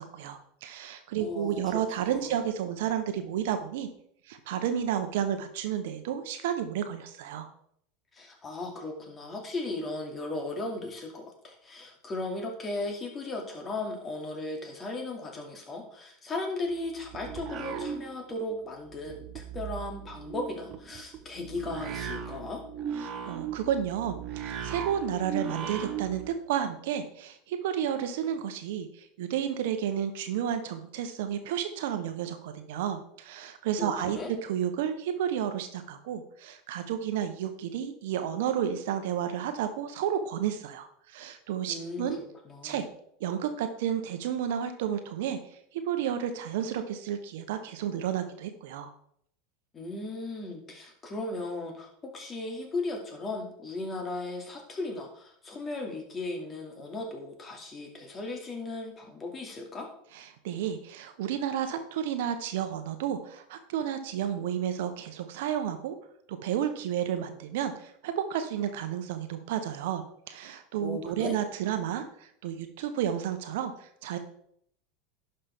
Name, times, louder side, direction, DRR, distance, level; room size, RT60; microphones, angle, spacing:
voice 1, 0.0-3.9 4.3-7.5 23.0-42.2 42.6-42.9 43.2-45.4 45.7-48.9 60.1-66.0 66.3-74.2, right 9 dB, 70° right, 8 dB, 1.0 m, -31 dB
voice 2, 1.2-1.8 2.3-2.4 8.1-22.6 33.8-34.3 41.7-42.8 49.7-59.9 70.8-71.4, left 2 dB, 30° left, 2 dB, 2.5 m, -36 dB
sound 1, 16.7-18.5 18.8-26.3, right 7 dB, 45° right, 1.1 m, -38 dB
11.0 x 5.6 x 3.6 m, 0.67 s
hypercardioid pair, 90°, 0 cm